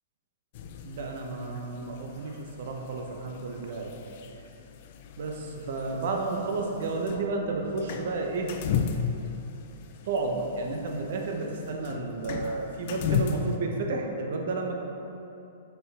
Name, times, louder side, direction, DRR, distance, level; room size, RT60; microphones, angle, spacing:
sound 1, 0.5-13.6, left 6 dB, 50° left, 0.4 m, -36 dB
voice 1, 0.8-3.9 5.2-8.5 10.1-14.7, right 3 dB, 65° right, 2 dB, 0.8 m, -32 dB
6.6 x 4.6 x 3.4 m, 2.9 s
hypercardioid pair, 145°, 0 cm